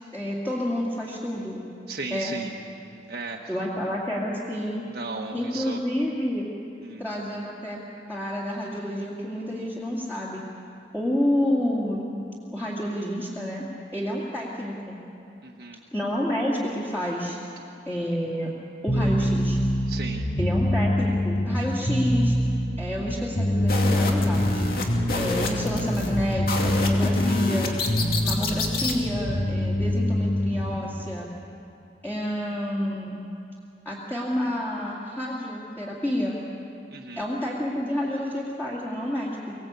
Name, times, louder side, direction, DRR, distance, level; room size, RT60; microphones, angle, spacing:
voice 1, 0.1-1.6 2.1-2.3 3.5-4.8 5.3-6.5 7.0-7.8 8.1-10.4 10.9-12.1 12.5-13.6 13.9-15.0 15.9-17.4 17.9-18.5 18.8-19.6 20.4-22.4 22.8-24.6 25.1-27.7 28.2-31.3 32.0-33.2 33.8-36.4 37.2-39.6, equal, 10° left, -6 dB, 2.4 m, -29 dB
voice 2, 1.9-2.5 3.1-3.6 4.9-5.8 6.8-7.0 15.4-15.8 19.9-20.2 36.9-37.2, right 3 dB, 60° right, 0 dB, 1.4 m, -36 dB
sound 1, 18.9-30.7, left 1 dB, 80° left, 4.1 m, -25 dB
sound 2, 23.7-29.0, left 2 dB, 55° left, 2.6 m, -29 dB
24.5 x 18.0 x 8.2 m, 2.8 s
head